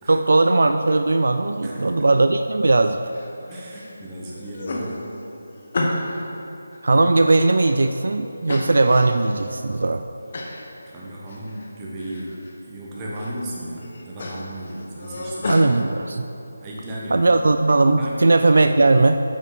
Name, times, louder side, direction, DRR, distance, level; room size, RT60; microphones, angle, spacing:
voice 1, 0.1-3.0 6.8-10.0 15.5-16.3 17.1-19.2, right 2 dB, 70° right, 8 dB, 0.3 m, -18 dB
voice 2, 1.6-2.1 3.5-5.0 10.9-15.6 16.6-17.3 18.0-18.2, right 1 dB, 20° right, -5 dB, 1.3 m, -35 dB
sound 1, 3.1-3.9 4.3-6.3 6.7-7.9 8.5-9.3 9.7-9.8 10.3-10.6 11.0-11.7 12.0-12.5 13.0-13.4 13.8-15.7, left 2 dB, 45° left, 1.1 m, -31 dB
8.9 x 5.9 x 4.2 m, 2.9 s
figure-of-eight pair, 165°, 0 cm